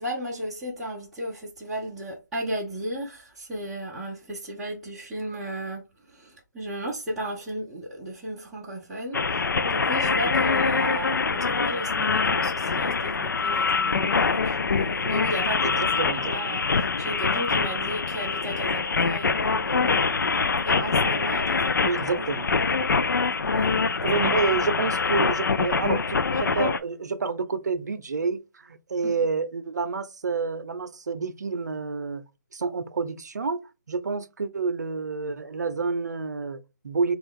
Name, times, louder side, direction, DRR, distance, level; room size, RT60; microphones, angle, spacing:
voice 1, 0.0-5.8 6.1-22.3 23.4-24.2 29.0-29.3, right 1 dB, ahead, 0.6 m, -35 dB
sound 1, 9.1-26.8, left 4 dB, 85° left, 0.4 m, -24 dB
voice 2, 15.6-16.3 21.8-22.9 24.0-32.2 32.5-37.2, right 4 dB, 65° right, 0.6 m, -29 dB
4.3 x 2.4 x 3.5 m
hypercardioid pair, 165°, 10 cm